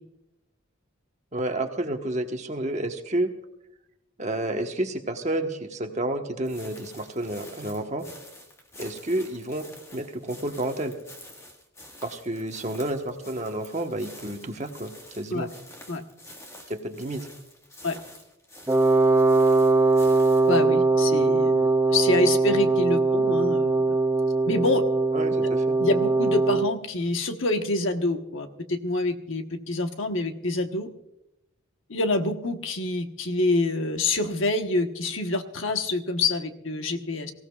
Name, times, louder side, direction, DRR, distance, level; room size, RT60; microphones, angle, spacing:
voice 1, 1.3-3.3 4.2-8.0 8.8-11.0 12.0-15.5 16.7-17.3 25.1-25.8, right 1 dB, 35° right, 4 dB, 1.2 m, -30 dB
sound 1, 6.4-20.6, left 1 dB, 15° left, 1.6 m, -48 dB
Wind instrument woodwind instrument, 18.7-26.7, right 3 dB, 10° right, 0.4 m, -21 dB
voice 2, 20.5-23.9 24.5-24.8 25.8-30.9 31.9-37.3, left 2 dB, 70° left, 6 dB, 1.2 m, -26 dB
24.0 x 16.0 x 2.4 m, 0.87 s
head